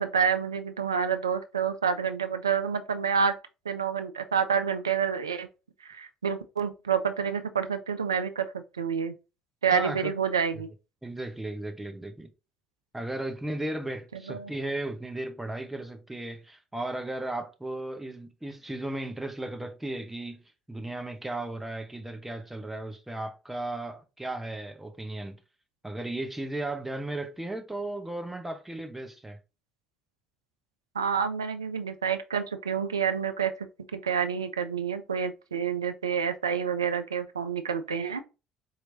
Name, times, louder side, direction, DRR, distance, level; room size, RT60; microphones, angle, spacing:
voice 1, 0.0-3.3 3.7-5.5 5.8-9.1 9.6-10.7 14.1-14.5 30.9-38.2, right 7 dB, 85° right, 0.4 m, -28 dB
voice 2, 9.7-10.1 11.0-12.3 12.9-20.4 20.7-25.4 25.8-29.4, right 2 dB, 10° right, 0.8 m, -35 dB
4.4 x 2.9 x 2.6 m
figure-of-eight pair, 55°, 2 cm